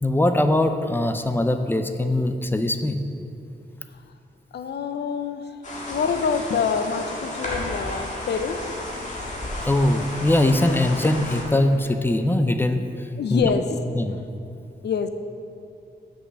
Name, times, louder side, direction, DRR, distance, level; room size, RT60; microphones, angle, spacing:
voice 1, 0.0-3.0 9.6-12.8 13.3-13.5 13.9-14.2, left 1 dB, 10° left, 7 dB, 0.4 m, -21 dB
voice 2, 4.5-5.5 5.9-8.6 13.2-13.8 14.8-15.1, left 6 dB, 75° left, 9 dB, 0.5 m, -26 dB
sound 1, 5.6-11.4, left 1 dB, 45° left, 1.5 m, -32 dB
6.3 x 5.6 x 6.3 m, 2.7 s
wide cardioid pair, 135°, 18 cm